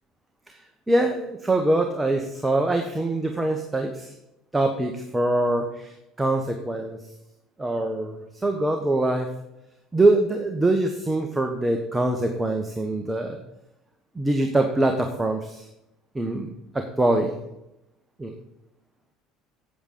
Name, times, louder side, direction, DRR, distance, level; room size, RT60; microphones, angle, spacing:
voice 1, 0.9-4.1 4.5-7.0 7.6-9.3 9.9-13.4 14.1-15.7 16.1-17.3 18.2-18.3, right 2 dB, 10° right, 4 dB, 1.3 m, -24 dB
8.7 x 7.8 x 6.9 m, 0.88 s
figure-of-eight pair, 60°, 0 cm